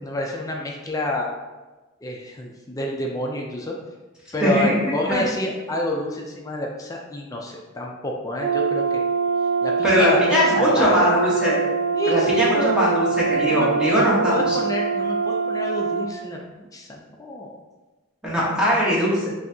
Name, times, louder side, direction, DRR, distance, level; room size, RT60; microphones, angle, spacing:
voice 1, 0.0-1.3 2.0-3.8 4.3-9.0 9.6-11.2 11.9-12.7 13.5-16.4 16.7-17.6, left 1 dB, 15° left, -1 dB, 0.4 m, -28 dB
voice 2, 4.4-4.8 5.1-5.2 9.8-11.6 12.1-14.6 18.2-19.3, equal, 5° right, -7 dB, 1.1 m, -20 dB
Brass instrument, 8.4-16.1, right 5 dB, 40° right, 0.5 m, -23 dB
5.5 x 2.7 x 2.7 m, 1.2 s
head